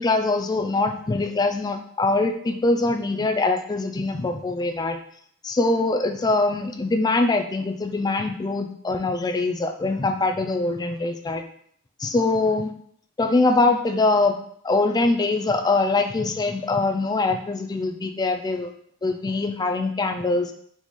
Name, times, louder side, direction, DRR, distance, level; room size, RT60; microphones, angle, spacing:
voice 1, 0.0-5.0 5.4-11.4 12.0-12.7 13.2-14.4 14.6-18.7 19.0-20.5, left 3 dB, 20° left, 6 dB, 0.3 m, -23 dB
4.0 x 3.7 x 3.1 m, 0.65 s
head